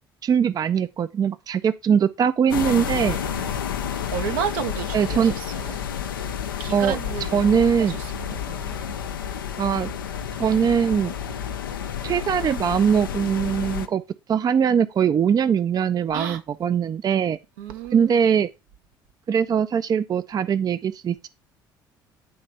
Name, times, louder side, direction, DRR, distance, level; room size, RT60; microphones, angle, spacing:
voice 1, 0.2-3.2 4.9-5.3 6.7-7.0 7.3-8.0 9.6-9.9 10.4-11.1 12.0-14.0 14.3-17.4 17.9-18.5 19.3-21.3, right 7 dB, 35° right, 0.5 m, -21 dB
sound 1, 2.5-13.9, left 8 dB, 85° left, 0.6 m, -30 dB
voice 2, 2.7-5.8 6.6-7.4 7.8-8.7 16.1-16.4 17.6-18.2, right 9 dB, 75° right, 0.8 m, -33 dB
9.4 x 3.3 x 5.2 m
hypercardioid pair, 55°, 11 cm